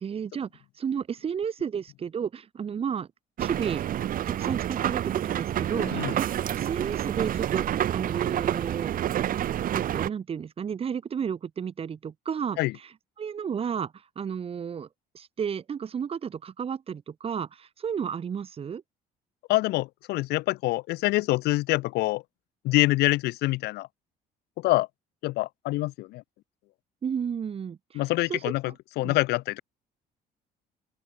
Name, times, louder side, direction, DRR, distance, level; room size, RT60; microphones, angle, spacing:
voice 1, 0.0-0.5 0.8-3.1 3.4-3.8 4.3-9.0 9.7-12.9 13.2-14.9 15.1-18.8 27.0-27.8 28.3-28.7 29.0-29.2, right 7 dB, 35° right, 0.9 m, -32 dB
sound 1, 3.4-10.1, right 11 dB, 55° right, 1.5 m, -28 dB
voice 2, 5.7-6.1 12.6-12.7 19.5-22.2 22.6-23.9 24.6-24.9 25.2-26.2 27.9-29.6, left 19 dB, 75° left, 0.4 m, -26 dB
open air
cardioid pair, 110°, 17 cm